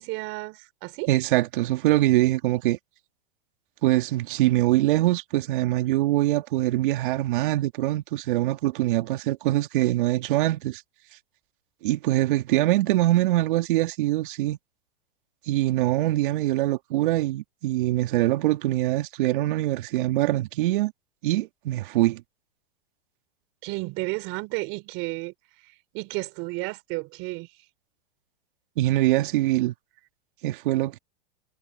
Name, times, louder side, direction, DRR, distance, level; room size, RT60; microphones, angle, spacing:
voice 1, 0.0-1.1 23.6-25.3 25.9-27.5, right 25 dB, 45° right, 4.1 m, -32 dB
voice 2, 1.1-2.8 3.8-10.8 11.8-14.6 15.5-20.9 21.2-22.2 28.8-29.7 30.4-31.0, right 16 dB, 60° right, 2.4 m, -23 dB
hypercardioid pair, 115°, 29 cm